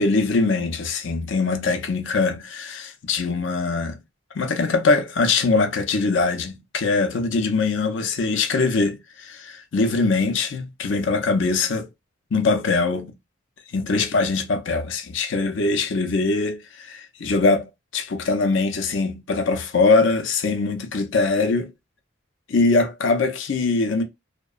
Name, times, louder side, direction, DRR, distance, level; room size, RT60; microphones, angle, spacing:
voice 1, 0.0-4.0 4.3-11.9 12.3-13.1 13.7-21.7 22.5-24.0, left 3 dB, 65° left, 0.5 m, -22 dB
2.8 x 2.2 x 2.3 m
head